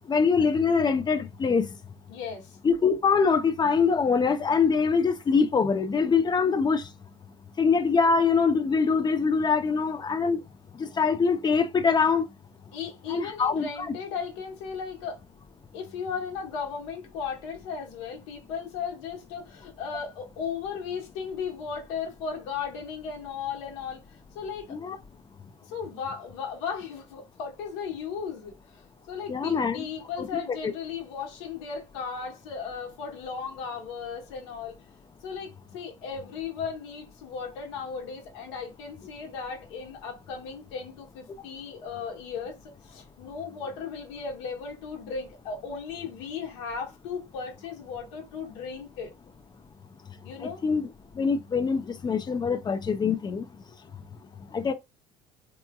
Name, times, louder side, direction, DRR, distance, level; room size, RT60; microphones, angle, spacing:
voice 1, 0.1-1.7 2.6-6.8 7.6-10.4 10.8-12.3 13.1-13.6 24.7-25.0 29.3-29.8 30.2-30.7 50.4-50.9 51.2-53.5 54.5-54.7, left 5 dB, 30° left, 0.6 m, -24 dB
voice 2, 2.1-2.6 12.7-15.2 15.7-24.0 24.3-24.8 25.7-28.8 29.1-34.8 35.2-49.1 50.2-50.6, left 6 dB, 80° left, 1.2 m, -36 dB
3.5 x 3.0 x 2.3 m
supercardioid pair, 80°, 15 cm